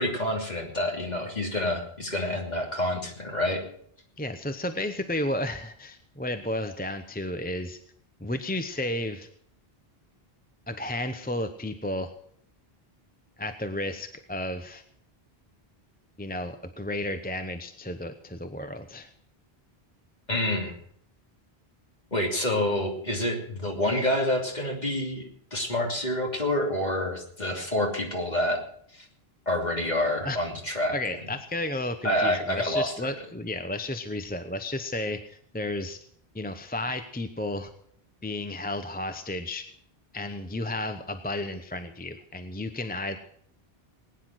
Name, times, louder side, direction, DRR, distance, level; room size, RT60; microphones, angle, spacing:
voice 1, 0.0-3.6 20.3-20.7 22.1-28.6 28.9-29.1 29.5-31.0 32.0-33.1, left 1 dB, 45° left, 1 dB, 3.3 m, -28 dB
voice 2, 4.2-7.8 8.2-9.3 10.7-12.1 13.4-14.8 16.2-19.1 30.2-30.4 30.9-36.0 36.3-37.7 38.2-39.6 40.1-43.2, left 1 dB, 10° left, 8 dB, 0.9 m, -32 dB
20.0 x 9.9 x 6.3 m, 0.63 s
omnidirectional pair, 1.0 m